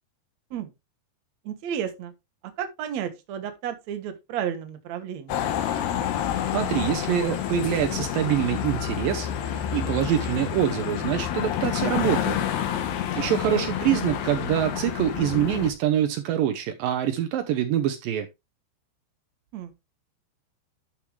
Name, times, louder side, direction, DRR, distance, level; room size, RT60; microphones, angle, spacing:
voice 1, 1.4-2.1 2.4-5.5 13.1-13.8 19.5-19.7, right 9 dB, 65° right, 1.8 m, -33 dB
sound 1, 5.3-15.7, left 10 dB, 70° left, 3.0 m, -28 dB
voice 2, 6.5-12.4 13.1-18.3, right 10 dB, 90° right, 2.0 m, -25 dB
12.0 x 6.5 x 3.2 m
omnidirectional pair, 5.2 m